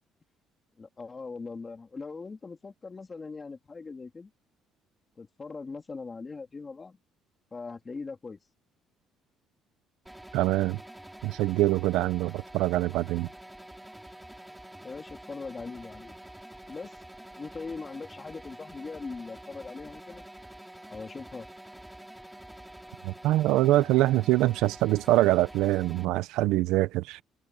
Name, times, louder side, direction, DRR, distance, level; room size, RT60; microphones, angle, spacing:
voice 1, 0.8-4.3 5.2-7.0 7.5-8.4 14.8-16.2 16.7-17.0 17.4-20.3 20.9-21.5, left 4 dB, 20° left, 3.0 m, -40 dB
sound 1, 10.1-26.1, right 1 dB, 5° right, 6.2 m, -47 dB
voice 2, 10.3-10.8 11.2-13.3 23.0-27.2, right 16 dB, 85° right, 0.7 m, -24 dB
cardioid pair, 180°, 0 cm